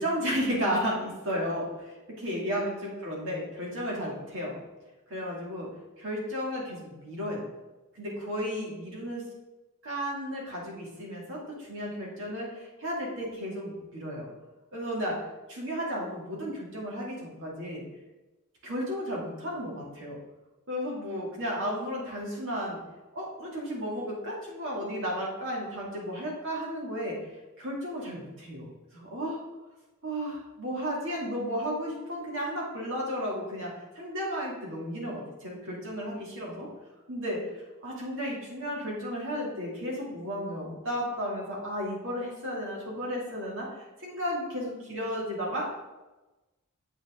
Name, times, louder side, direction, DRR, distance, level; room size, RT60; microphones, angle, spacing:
voice 1, 0.0-4.6 5.1-5.7 6.0-7.4 7.9-9.2 9.8-14.3 14.7-15.2 15.5-17.8 18.6-20.2 20.7-22.8 23.1-27.2 27.6-28.7 28.9-29.4 30.0-36.7 37.1-43.7 44.0-45.7, equal, 60° right, -3 dB, 2.5 m, -33 dB
7.5 x 6.0 x 3.7 m, 1.1 s
head